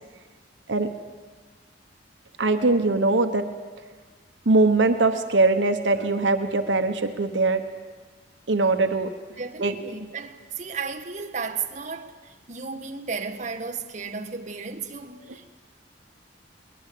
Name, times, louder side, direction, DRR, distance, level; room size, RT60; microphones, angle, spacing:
voice 1, 2.4-3.4 4.5-7.6 8.5-9.1 9.6-9.7, right 3 dB, 85° right, 1.1 m, -21 dB
voice 2, 9.4-15.5, right 5 dB, 40° right, 1.5 m, -34 dB
22.0 x 19.5 x 8.5 m
head